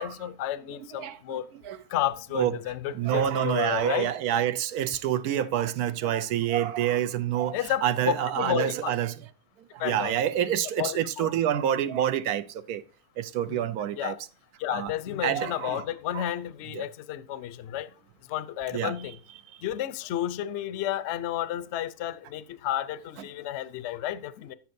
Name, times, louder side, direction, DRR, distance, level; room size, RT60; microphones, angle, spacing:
voice 1, 0.0-1.4 1.9-4.1 7.5-7.8 8.4-8.9 9.8-10.1 10.8-11.3 13.5-13.6 13.9-14.2 14.6-17.9 18.3-19.2 19.6-24.5, left 12 dB, 60° left, 0.8 m, -31 dB
voice 2, 0.8-1.8 2.3-2.5 2.9-9.1 9.8-12.8 13.2-14.2 14.7-14.9 15.2-15.8 16.1-16.3 16.7-16.9 18.7-19.0, right 10 dB, 75° right, 1.1 m, -27 dB
10.5 x 8.4 x 2.6 m
omnidirectional pair, 1.6 m